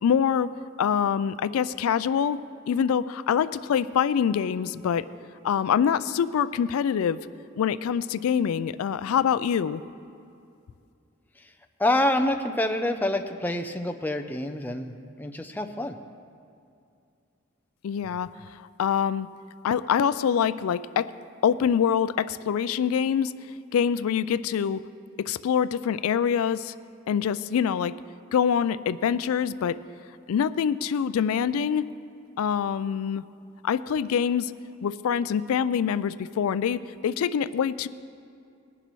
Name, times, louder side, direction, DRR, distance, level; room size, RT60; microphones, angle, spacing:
voice 1, 0.0-0.5 0.8-2.4 2.7-5.0 5.4-7.2 7.6-9.8 17.8-18.3 18.8-19.3 19.6-21.1 21.4-23.3 23.7-24.8 25.2-26.7 27.1-28.0 28.3-29.8 30.3-31.9 32.4-33.2 33.6-34.5 34.8-37.9, left 8 dB, 80° left, 15 dB, 0.3 m, -25 dB
voice 2, 11.8-16.0, left 1 dB, 10° left, 6 dB, 0.4 m, -27 dB
20.0 x 11.0 x 3.1 m, 2.5 s
head